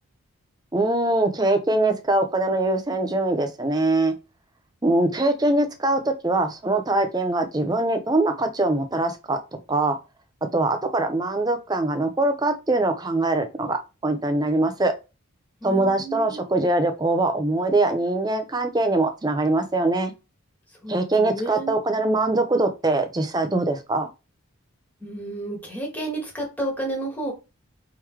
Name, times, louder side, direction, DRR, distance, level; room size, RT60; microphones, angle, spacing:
voice 1, 0.7-4.1 4.8-9.4 9.7-10.0 10.5-14.9 15.6-20.1 20.9-24.1, right 2 dB, 20° right, 0.5 m, -22 dB
voice 2, 15.6-16.4 20.8-21.8 25.0-27.3, right 1 dB, 10° left, 1.5 m, -31 dB
3.8 x 3.0 x 4.6 m
head